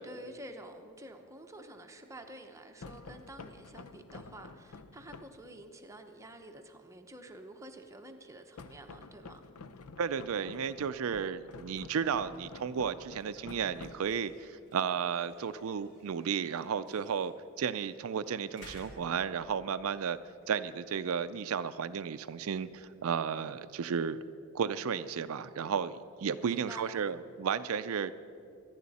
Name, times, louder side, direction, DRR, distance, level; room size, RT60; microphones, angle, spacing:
voice 1, 0.0-9.4 26.4-27.0, right 1 dB, 15° right, 5 dB, 0.8 m, -49 dB
sound 1, 2.8-5.5 8.6-14.5, left 4 dB, 85° left, 0.6 m, -50 dB
voice 2, 10.0-20.2 20.5-24.2 24.5-28.1, right 7 dB, 70° right, 12 dB, 0.4 m, -33 dB
sound 2, 11.8-24.5, equal, 55° left, 3.8 m, -60 dB
25.0 x 10.5 x 4.2 m, 2.5 s
head